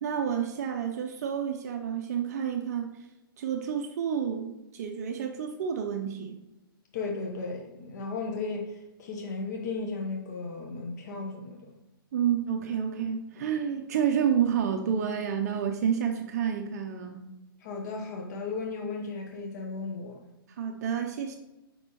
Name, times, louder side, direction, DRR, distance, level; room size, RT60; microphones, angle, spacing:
voice 1, 0.0-3.0 3.4-6.4 12.1-17.2 20.6-21.4, right 8 dB, 45° right, 4 dB, 0.5 m, -29 dB
voice 2, 6.9-11.6 17.6-20.2, left 3 dB, 50° left, 1 dB, 0.9 m, -35 dB
6.4 x 5.3 x 2.9 m, 0.99 s
hypercardioid pair, 150°, 12 cm